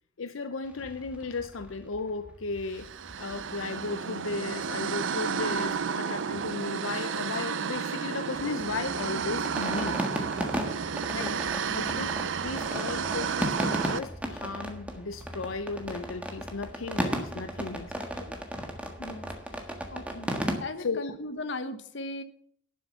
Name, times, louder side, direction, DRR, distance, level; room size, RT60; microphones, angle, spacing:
voice 1, 0.2-2.9 3.2-10.0 11.1-11.4 11.8-12.1 12.4-18.4 20.8-21.1, left 4 dB, 85° left, 10 dB, 0.7 m, -35 dB
sound 1, 0.7-5.1 5.4-5.5 5.7-5.9 6.2-7.2 7.5-20.6, equal, 5° right, 1.5 m, -36 dB
sound 2, 2.7-14.0, right 6 dB, 70° right, 0.6 m, -32 dB
voice 2, 5.4-6.0 11.1-11.4 11.7-12.1 19.0-19.3 19.9-20.3 20.6-22.2, left 2 dB, 60° left, 10 dB, 1.2 m, -38 dB
11.5 x 7.0 x 6.8 m, 0.64 s
head